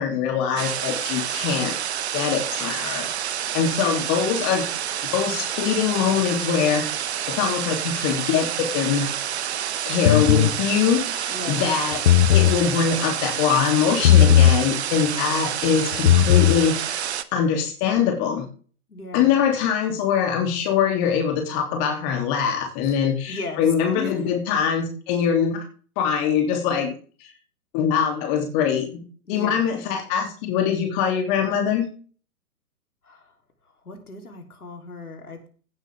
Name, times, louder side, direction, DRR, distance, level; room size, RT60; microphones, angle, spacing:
voice 1, 0.0-1.7 2.1-3.1 3.5-4.7 5.1-6.8 7.3-9.2 9.8-12.0 12.3-17.0 17.3-18.5 19.1-25.6 26.0-26.9 27.2-27.3 27.7-29.0 29.3-31.9, left 7 dB, 30° left, 3 dB, 3.0 m, -23 dB
sound 1, 0.6-17.2, right 10 dB, 45° right, 1.0 m, -28 dB
sound 2, 10.1-10.5 11.9-12.6 14.0-14.6 15.9-16.6, left 11 dB, 45° left, 0.8 m, -15 dB
voice 2, 11.3-11.6 18.9-19.3 22.8-23.0 23.3-23.6 23.9-24.3 29.3-29.6 33.1-33.2 33.9-35.5, left 3 dB, 80° left, 3 dB, 3.6 m, -36 dB
16.5 x 8.0 x 3.6 m, 0.40 s
figure-of-eight pair, 125°, 44 cm